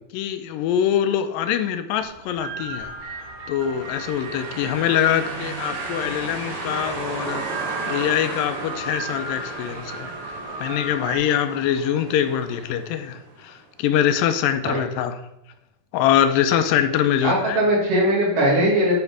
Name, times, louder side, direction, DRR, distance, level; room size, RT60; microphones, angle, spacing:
voice 1, 0.1-2.9 3.5-7.5 7.9-15.2 15.9-17.6, left 10 dB, 85° left, 9 dB, 2.3 m, -23 dB
sound 1, 2.0-11.2, right 3 dB, 85° right, 2.8 m, -36 dB
sound 2, 3.7-13.5, right 3 dB, 50° right, 1.8 m, -34 dB
voice 2, 17.2-18.9, right 1 dB, 70° right, -4 dB, 3.8 m, -20 dB
9.9 x 3.6 x 4.7 m, 0.82 s
omnidirectional pair, 4.0 m